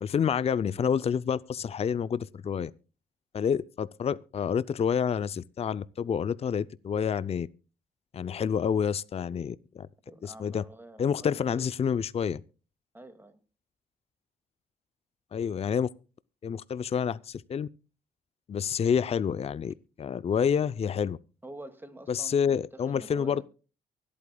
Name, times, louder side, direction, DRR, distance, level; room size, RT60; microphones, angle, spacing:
voice 1, 0.0-2.7 3.3-7.5 8.1-9.9 10.2-10.6 11.0-12.4 15.3-15.9 16.4-17.7 18.5-21.2 22.1-23.4, left 7 dB, 40° left, 0.5 m, -28 dB
voice 2, 10.1-11.7 12.9-13.4 21.4-23.4, right 1 dB, 15° right, 2.2 m, -47 dB
24.0 x 8.5 x 2.3 m
supercardioid pair, 60°, 16 cm